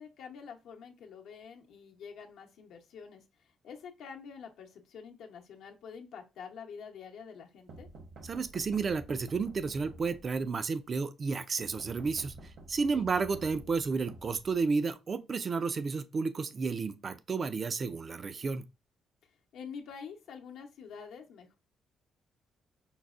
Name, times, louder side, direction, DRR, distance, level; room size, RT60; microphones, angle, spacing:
voice 1, 0.0-3.2 3.6-7.9 12.9-13.1 19.5-21.6, left 6 dB, 80° left, 0.7 m, -47 dB
sound 1, 7.7-10.6 11.6-14.9, right 2 dB, 65° right, 1.0 m, -50 dB
voice 2, 8.3-12.3 12.7-18.6, right 4 dB, 40° right, 0.3 m, -32 dB
5.3 x 2.1 x 2.4 m
cardioid pair, 90°, 0 cm